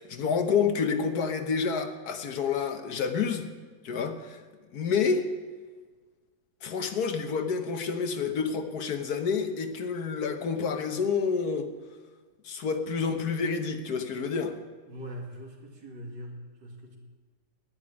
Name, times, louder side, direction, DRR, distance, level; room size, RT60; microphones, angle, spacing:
voice 1, 0.0-3.5 3.8-4.4 4.7-5.3 6.6-11.7 12.4-14.5, left 5 dB, 65° left, 7 dB, 1.5 m, -28 dB
voice 2, 14.9-17.0, equal, 80° right, 1 dB, 2.8 m, -42 dB
10.0 x 9.5 x 9.7 m, 1.4 s
omnidirectional pair, 1.9 m